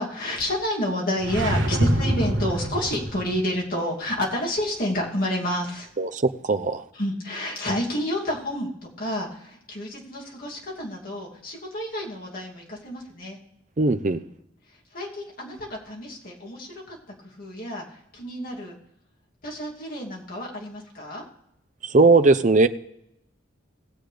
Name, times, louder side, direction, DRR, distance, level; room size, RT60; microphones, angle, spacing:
voice 1, 0.0-5.9 6.9-8.7 9.0-13.4 14.9-17.0 17.2-18.8 19.4-21.2, left 1 dB, 50° left, -2 dB, 2.7 m, -29 dB
sound 1, 1.2-3.4, right 1 dB, 70° right, 1.4 m, -25 dB
voice 2, 6.5-6.8 13.8-14.2 21.9-22.7, right 3 dB, 40° right, 9 dB, 0.6 m, -18 dB
19.0 x 7.8 x 3.4 m, 0.79 s
head